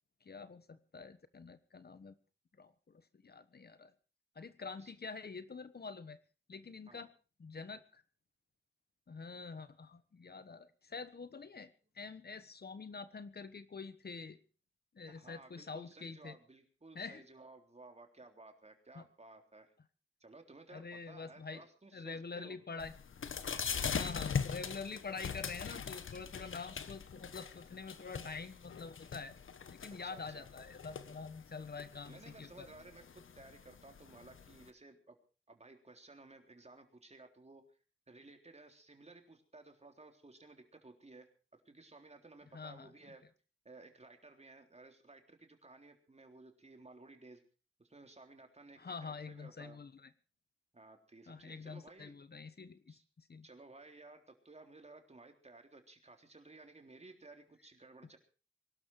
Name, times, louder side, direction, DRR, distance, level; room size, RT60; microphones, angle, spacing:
voice 1, 0.2-2.1 2.6-3.9 4.3-6.2 6.5-7.1 7.4-8.0 9.1-11.7 11.9-14.4 14.9-16.3 16.9-17.2 18.9-19.0 20.7-21.7 21.9-22.9 23.9-29.3 29.7-32.7 42.5-42.9 48.8-50.1 51.3-53.5, left 4 dB, 50° left, 12 dB, 1.3 m, -46 dB
voice 2, 15.1-19.7 20.2-22.6 23.7-24.1 30.0-30.5 32.1-35.2 35.5-37.8 38.1-41.3 41.7-43.2 43.6-47.4 47.8-49.8 50.7-52.2 52.9-53.0 53.4-58.2, right 2 dB, 30° right, 5 dB, 3.7 m, -57 dB
sound 1, 22.8-34.7, left 6 dB, 80° left, 1.5 m, -42 dB
23.0 x 12.5 x 4.8 m, 0.37 s
wide cardioid pair, 80°, 20 cm